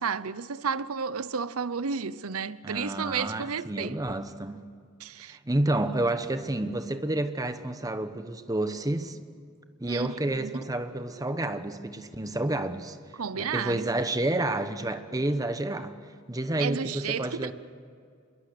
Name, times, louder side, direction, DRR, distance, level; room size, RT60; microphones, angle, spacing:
voice 1, 0.0-4.0 5.0-5.4 9.9-10.1 10.4-10.6 13.1-13.8 16.6-17.5, right 6 dB, 80° right, 0.7 m, -32 dB
voice 2, 2.6-4.6 5.3-9.2 9.8-13.0 13.4-15.9 16.3-17.5, right 1 dB, 15° right, 1.0 m, -30 dB
26.5 x 22.0 x 6.9 m
head